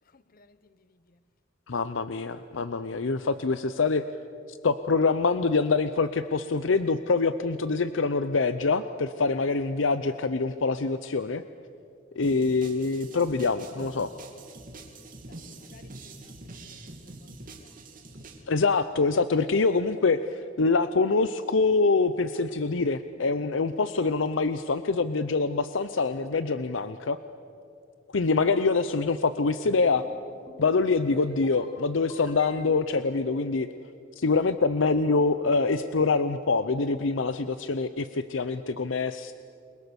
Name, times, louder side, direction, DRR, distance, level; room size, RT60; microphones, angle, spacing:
voice 1, 0.1-1.2 15.3-16.6 17.0-17.3 17.6-18.5, left 3 dB, 50° left, 0.9 m, -60 dB
voice 2, 1.7-4.0 4.5-11.4 12.2-14.1 18.5-27.2 28.1-30.0 30.6-33.7 34.2-39.3, left 4 dB, 75° left, 0.7 m, -25 dB
sound 1, 12.2-18.4, right 2 dB, 45° right, 2.9 m, -45 dB
sound 2, 29.7-30.1 30.5-30.9 31.3-31.7 32.1-32.9, left 1 dB, 25° left, 6.3 m, -48 dB
29.0 x 22.5 x 7.0 m
head